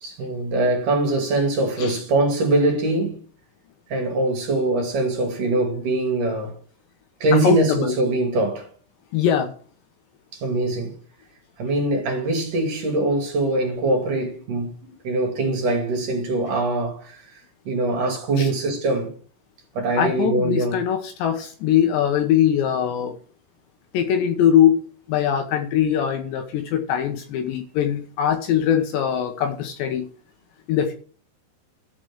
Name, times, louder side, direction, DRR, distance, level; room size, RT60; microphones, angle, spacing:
voice 1, 0.0-3.2 3.9-6.5 7.2-8.7 10.3-10.9 11.6-17.2 17.7-19.1 19.8-20.8, right 2 dB, 45° right, 3.5 m, -22 dB
voice 2, 7.4-7.9 9.1-9.5 18.4-18.5 20.0-23.1 23.9-24.8 25.1-30.1 30.7-30.9, left 9 dB, 70° left, 3.0 m, -21 dB
13.0 x 5.0 x 7.9 m
omnidirectional pair, 5.9 m